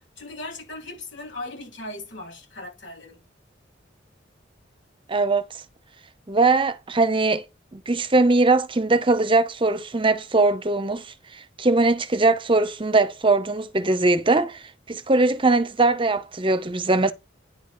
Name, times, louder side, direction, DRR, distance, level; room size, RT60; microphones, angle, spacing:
voice 1, 0.2-3.2, left 2 dB, 85° left, 7.2 m, -38 dB
voice 2, 5.1-5.6 6.3-7.4 7.7-11.1 11.6-17.1, right 3 dB, 30° right, 0.8 m, -21 dB
10.0 x 4.0 x 6.6 m
head